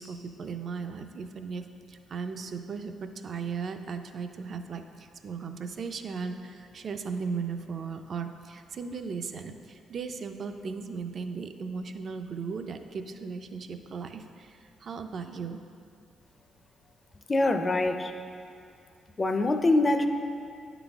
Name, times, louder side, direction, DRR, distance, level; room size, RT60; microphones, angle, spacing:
voice 1, 0.0-15.6, right 5 dB, 50° right, 7 dB, 0.4 m, -37 dB
voice 2, 17.3-18.1 19.2-20.1, left 2 dB, 25° left, 7 dB, 0.4 m, -24 dB
9.4 x 3.9 x 3.5 m, 2.5 s
cardioid pair, 90°, 0 cm